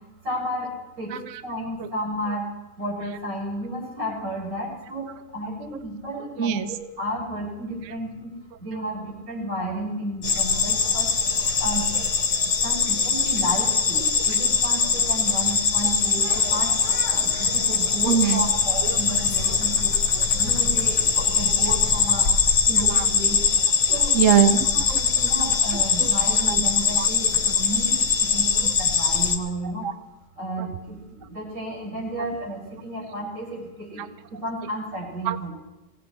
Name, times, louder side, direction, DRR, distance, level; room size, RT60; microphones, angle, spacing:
voice 1, 0.2-0.7 1.0-1.1 1.4-2.4 2.8-5.0 5.3-8.3 8.6-11.1 11.6-11.8 12.6-16.7 17.1-19.9 20.3-22.2 22.7-23.4 23.9-24.1 25.0-28.0 28.3-29.8 30.4-34.0 34.4-35.5, right 1 dB, 90° right, -4 dB, 7.3 m, -32 dB
sound 1, 10.2-29.4, left 6 dB, 75° left, 2.1 m, -22 dB
voice 2, 18.0-18.5 18.9-19.0 20.2-20.5 22.8-23.1 23.9-25.0 26.0-26.1 26.5-26.6 27.0-27.1 29.8-29.9 34.0-34.1 35.2-35.5, right 8 dB, 60° right, 11 dB, 0.9 m, -23 dB
23.0 x 17.5 x 3.3 m, 1.0 s
omnidirectional pair, 1.9 m